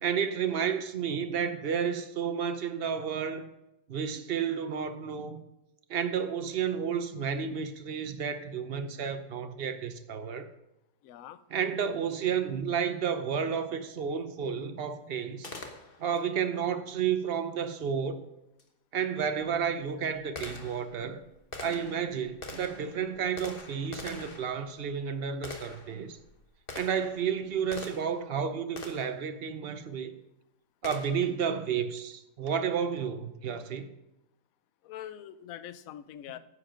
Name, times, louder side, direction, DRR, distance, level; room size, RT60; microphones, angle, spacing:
voice 1, 0.0-3.5 3.9-5.4 5.9-10.5 11.5-15.5 16.0-18.2 18.9-21.2 21.6-26.2 26.7-30.1 30.8-33.9, right 7 dB, 60° right, 0.6 m, -31 dB
voice 2, 11.0-11.4 34.8-36.4, left 11 dB, 65° left, 0.9 m, -43 dB
Gunshot gunfire, 15.4-16.2 18.6-18.7 19.4-28.3 28.8-29.2 30.8-31.4, left 3 dB, 35° left, 1.2 m, -45 dB
10.0 x 8.5 x 5.1 m
omnidirectional pair, 1.9 m